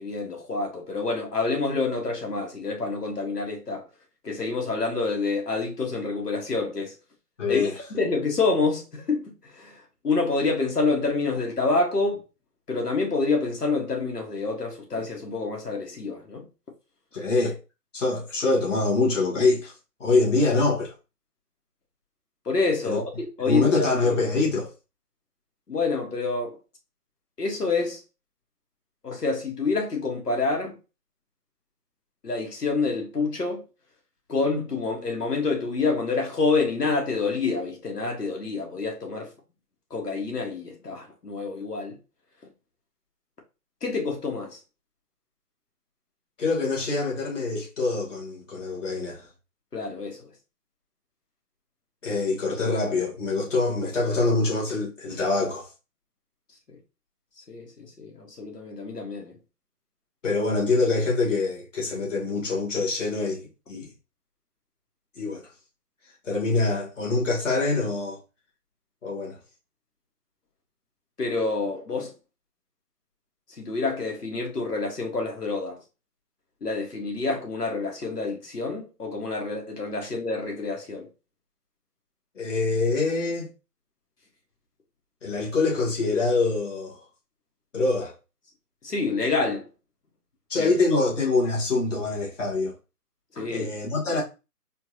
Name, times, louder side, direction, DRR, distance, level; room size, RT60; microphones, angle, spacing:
voice 1, 0.0-3.9 4.2-7.0 7.5-12.2 12.7-16.4 22.5-23.1 23.4-23.9 25.7-26.6 27.4-28.0 29.0-30.8 32.2-33.6 34.3-39.3 39.9-42.0 43.8-44.6 49.7-50.3 56.7-56.8 57.5-59.4 71.2-72.1 73.6-75.8 76.6-81.1 88.8-89.6 90.6-90.7 93.3-93.7, left 3 dB, 75° left, 1.8 m, -27 dB
voice 2, 7.4-7.8 17.1-17.6 17.9-19.7 20.0-20.9 22.8-23.0 23.5-24.7 46.4-49.3 52.0-55.7 60.2-63.9 65.2-65.4 66.2-68.2 69.0-69.4 82.4-83.5 85.2-87.0 87.7-88.1 90.5-92.7 93.5-94.2, left 3 dB, 50° left, 1.9 m, -25 dB
4.3 x 2.6 x 2.9 m
figure-of-eight pair, 155°, 47 cm